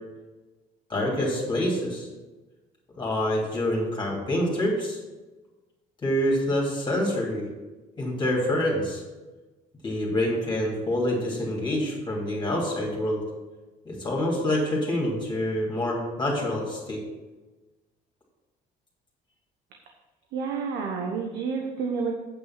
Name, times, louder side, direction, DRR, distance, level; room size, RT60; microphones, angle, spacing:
voice 1, 0.9-2.1 3.0-5.0 6.0-7.4 8.0-9.0 9.8-13.2 13.8-17.0, left 1 dB, 30° left, -3 dB, 2.8 m, -26 dB
voice 2, 20.3-22.1, right 5 dB, 90° right, 1 dB, 1.1 m, -29 dB
8.6 x 5.6 x 5.9 m, 1.2 s
cardioid pair, 110°, 17 cm